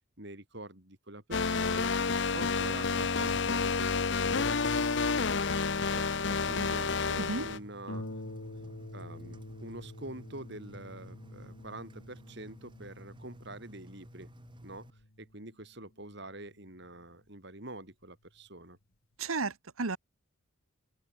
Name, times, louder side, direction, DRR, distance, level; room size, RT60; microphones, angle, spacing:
voice 1, 0.2-2.1 2.3-4.6 5.8-8.0 8.9-14.3 14.6-14.9 15.2-18.8, right 1 dB, 55° right, 5.4 m, -46 dB
sound 1, 1.3-7.6, left 4 dB, 55° left, 0.9 m, -29 dB
Engine, 4.8-14.9, equal, 20° right, 2.6 m, -53 dB
Harp, 7.9-17.1 17.9-18.0 18.5-18.6, left 1 dB, 80° left, 2.6 m, -47 dB
voice 2, 19.2-20.0, right 3 dB, 85° right, 1.4 m, -33 dB
open air
head